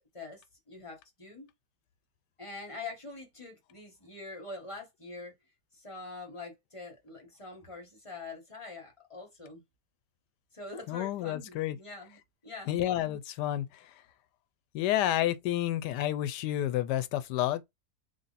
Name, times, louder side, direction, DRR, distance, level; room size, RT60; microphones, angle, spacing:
voice 1, 0.1-1.5 2.4-5.3 5.7-9.6 10.5-12.8, left 3 dB, 20° left, 1.1 m, -44 dB
voice 2, 10.9-11.8 12.7-14.0 14.7-17.6, left 13 dB, 90° left, 1.2 m, -30 dB
3.4 x 2.6 x 4.0 m
omnidirectional pair, 1.7 m